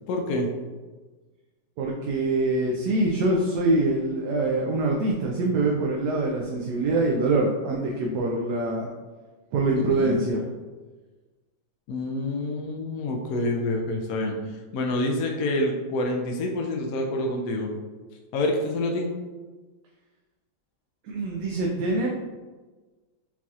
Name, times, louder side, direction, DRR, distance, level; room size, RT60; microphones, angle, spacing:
voice 1, 0.1-0.5 9.8-10.2 11.9-17.7 18.3-19.1, left 2 dB, 70° left, 1 dB, 0.9 m, -27 dB
voice 2, 1.8-8.9 9.5-10.4 21.0-22.1, right 2 dB, 75° right, -1 dB, 1.1 m, -24 dB
6.0 x 2.8 x 2.4 m, 1.3 s
omnidirectional pair, 1.9 m